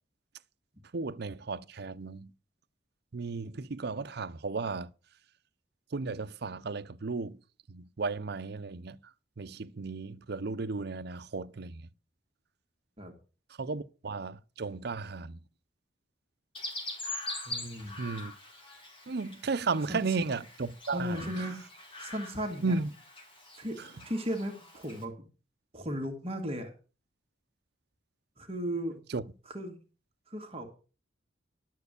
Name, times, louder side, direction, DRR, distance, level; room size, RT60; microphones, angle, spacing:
voice 1, 0.9-2.3 3.1-4.9 5.9-7.4 7.7-9.0 9.4-11.9 13.6-15.4 18.0-18.3 19.1-21.5 22.6-22.9 29.1-29.2, right 4 dB, 60° right, 0.6 m, -34 dB
Chirp tweet, 16.5-25.0, left 2 dB, 30° left, 2.7 m, -43 dB
voice 2, 17.5-18.0 19.9-20.0 20.9-21.6 22.0-22.8 23.6-23.8 24.1-25.1 25.7-26.7 28.4-29.0 29.5-29.8 30.3-30.7, equal, 30° right, 1.9 m, -35 dB
11.5 x 4.6 x 8.2 m
head